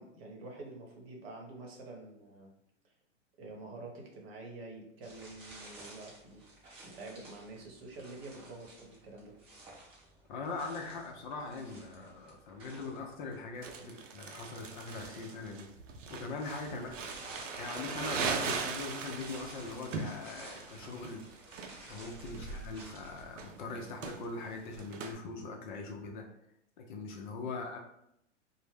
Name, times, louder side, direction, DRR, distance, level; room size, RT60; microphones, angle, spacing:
voice 1, 0.0-2.5 3.4-9.3 13.8-14.0 16.7-16.9 22.3-22.6 27.4-27.6, right 2 dB, 55° right, 0 dB, 0.9 m, -48 dB
sound 1, 5.0-13.6 16.2-23.5, right 2 dB, 15° right, 0.5 m, -53 dB
voice 2, 10.3-15.7 16.1-16.9 17.6-21.2 21.9-26.2 26.8-27.8, left 3 dB, 40° left, 2 dB, 0.4 m, -41 dB
Crumpling crinkling, 13.6-25.1, right 5 dB, 85° right, 0.5 m, -40 dB
2.0 x 2.0 x 3.2 m, 0.78 s
hypercardioid pair, 120°, 37 cm